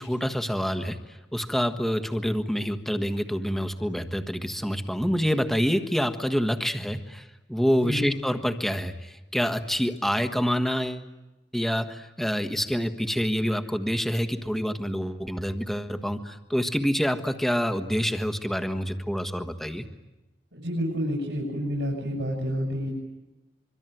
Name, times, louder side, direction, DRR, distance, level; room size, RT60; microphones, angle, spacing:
voice 1, 0.0-11.0 11.5-19.8, equal, ahead, 7 dB, 1.4 m, -27 dB
voice 2, 20.5-22.9, equal, 80° right, -2 dB, 7.1 m, -29 dB
25.5 x 24.5 x 9.2 m, 1.0 s
head